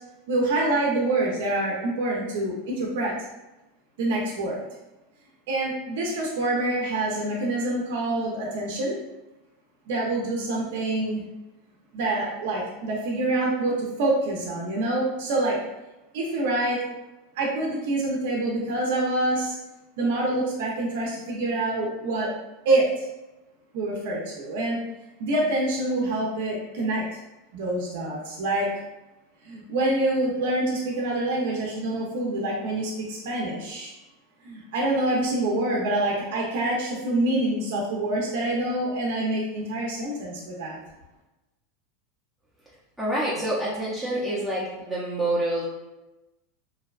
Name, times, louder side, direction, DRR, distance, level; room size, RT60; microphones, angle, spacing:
voice 1, 0.3-3.1 4.0-4.7 5.5-9.0 9.9-11.2 11.9-15.6 16.1-16.8 17.4-19.5 20.0-22.3 22.6-23.1 23.7-24.8 25.2-27.0 27.5-28.7 29.4-33.9 34.4-40.8, right 2 dB, 70° right, -2 dB, 0.5 m, -26 dB
voice 2, 43.0-45.6, right 1 dB, 5° right, -9 dB, 0.6 m, -27 dB
2.5 x 2.1 x 2.4 m, 1.0 s
supercardioid pair, 145°, 0 cm